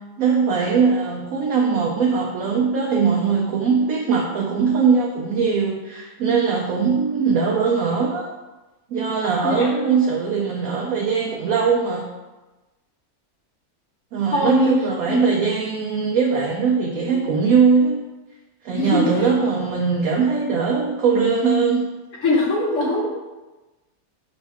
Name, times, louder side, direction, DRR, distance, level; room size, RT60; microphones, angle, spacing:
voice 1, 0.2-8.3 8.9-12.1 14.1-18.0 18.6-21.9, right 5 dB, 70° right, -2 dB, 1.0 m, -20 dB
voice 2, 14.3-14.7 15.0-15.2 18.7-19.3 22.2-23.1, left 2 dB, 60° left, -3 dB, 1.0 m, -21 dB
6.1 x 2.5 x 3.4 m, 1.1 s
omnidirectional pair, 1.6 m